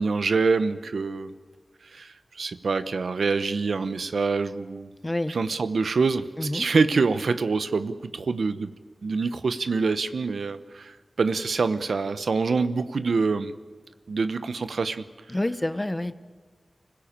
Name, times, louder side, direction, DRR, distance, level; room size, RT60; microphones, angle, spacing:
voice 1, 0.0-1.3 1.9-2.1 2.4-4.9 5.3-8.7 9.0-13.5 14.1-15.0, right 4 dB, 85° right, 12 dB, 0.9 m, -25 dB
voice 2, 5.0-5.4 6.4-6.7 15.3-16.2, left 1 dB, 25° left, 12 dB, 1.2 m, -28 dB
25.5 x 16.5 x 8.9 m, 1.5 s
cardioid pair, 40°, 0 cm